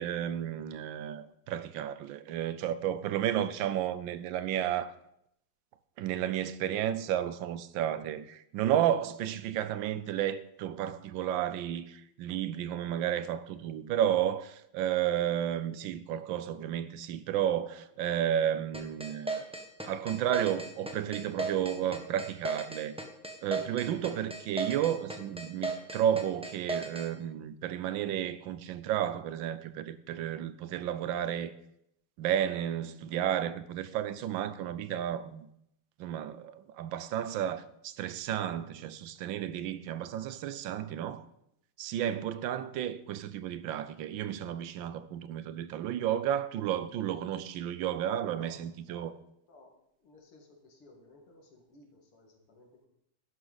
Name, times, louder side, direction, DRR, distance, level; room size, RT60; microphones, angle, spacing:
voice 1, 0.0-4.9 6.0-19.5 19.8-22.9 23.4-31.5 32.2-35.5 36.0-41.2 41.8-49.1, right 10 dB, 70° right, 1.3 m, -32 dB
sound 1, 18.7-27.1, right 3 dB, 5° right, 0.5 m, -35 dB
voice 2, 50.0-52.9, left 2 dB, 90° left, 3.1 m, -57 dB
11.5 x 11.0 x 4.1 m
omnidirectional pair, 2.3 m